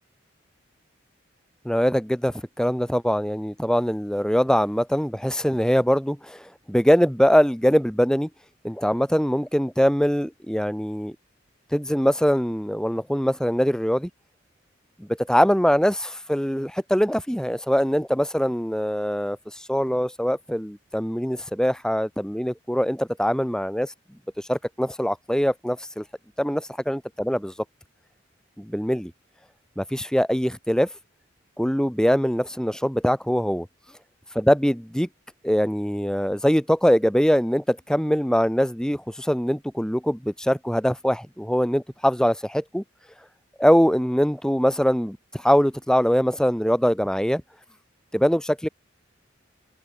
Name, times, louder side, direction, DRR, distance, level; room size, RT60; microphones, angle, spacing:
voice 1, 1.6-8.3 8.6-11.2 11.7-14.1 15.0-23.9 24.5-26.0 26.4-27.5 28.6-29.1 29.8-30.9 31.6-33.7 34.4-35.1 35.4-42.8 43.6-47.4 48.1-48.7, equal, 5° left, 5.5 m, -22 dB
head